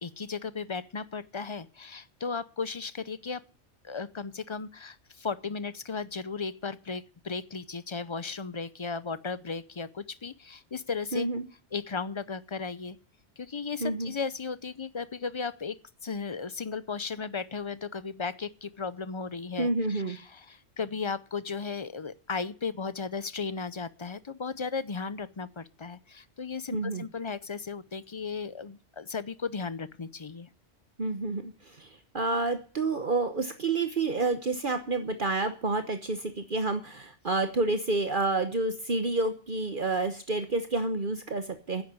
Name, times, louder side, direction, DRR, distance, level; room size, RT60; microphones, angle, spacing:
voice 1, 0.0-3.4 3.8-11.3 11.7-13.0 13.4-15.8 16.0-30.5, left 5 dB, 35° left, 0.5 m, -35 dB
voice 2, 11.1-11.4 13.8-14.1 19.6-20.2 26.7-27.0 31.0-31.5 31.8-31.9 32.1-41.8, right 3 dB, 45° right, 1.2 m, -29 dB
10.5 x 8.0 x 9.5 m
omnidirectional pair, 1.2 m